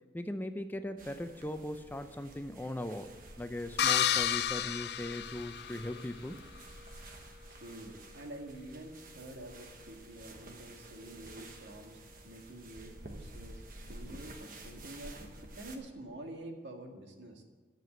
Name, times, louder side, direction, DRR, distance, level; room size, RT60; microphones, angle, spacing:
voice 1, 0.1-3.1 3.4-6.4, left 1 dB, 10° left, 9 dB, 0.5 m, -39 dB
sound 1, 1.0-15.8, right 1 dB, 50° right, 1.2 m, -51 dB
sound 2, 3.8-6.0, left 10 dB, 65° left, 0.5 m, -31 dB
voice 2, 7.5-15.1 15.6-17.4, right 1 dB, 80° right, 3 dB, 1.8 m, -48 dB
11.0 x 7.6 x 7.8 m, 1.3 s
head